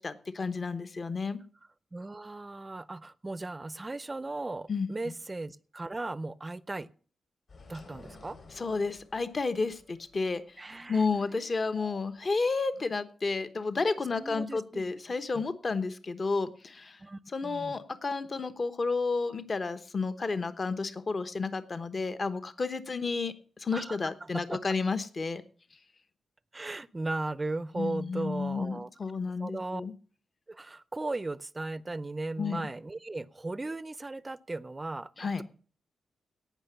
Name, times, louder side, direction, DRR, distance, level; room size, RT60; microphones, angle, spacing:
voice 1, 0.0-1.4 4.7-4.9 8.6-10.4 10.9-17.0 17.3-25.4 27.7-29.9 32.4-32.7 35.2-35.4, left 4 dB, 40° left, 1.1 m, -31 dB
voice 2, 1.9-6.9 7.7-8.4 10.6-11.1 11.6-12.0 14.2-14.8 15.3-15.4 17.0-17.8 23.7-24.6 26.5-28.9 29.4-29.8 30.5-35.1, right 2 dB, 20° right, 0.6 m, -37 dB
sound 1, 7.5-12.7, left 3 dB, 55° left, 3.5 m, -54 dB
17.5 x 5.9 x 6.8 m
cardioid pair, 100°, 0 cm